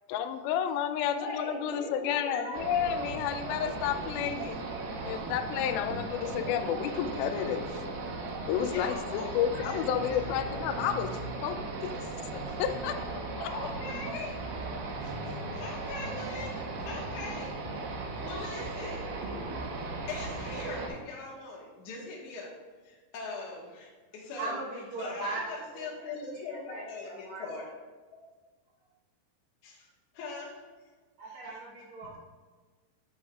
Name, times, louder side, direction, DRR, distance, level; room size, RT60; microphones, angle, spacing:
voice 1, 0.1-4.6 5.0-7.8 8.5-11.1 11.4-11.9 12.3-13.5, left 9 dB, 85° left, 8 dB, 2.2 m, -31 dB
voice 2, 1.2-2.6 8.7-10.4 12.5-12.6 13.4-14.4 15.0-17.6 18.2-19.1 20.1-22.5 22.8-24.6 25.0-27.7 29.6-29.9 30.1-30.6 31.2-31.6 32.0-32.2, left 3 dB, 60° left, -4 dB, 2.2 m, -41 dB
sound 1, 2.5-20.9, right 3 dB, 75° right, 2.5 m, -37 dB
voice 3, 24.4-26.1 26.5-27.4 31.2-32.2, right 2 dB, 90° right, -5 dB, 1.1 m, -39 dB
10.5 x 7.8 x 2.4 m, 1.4 s
omnidirectional pair, 4.7 m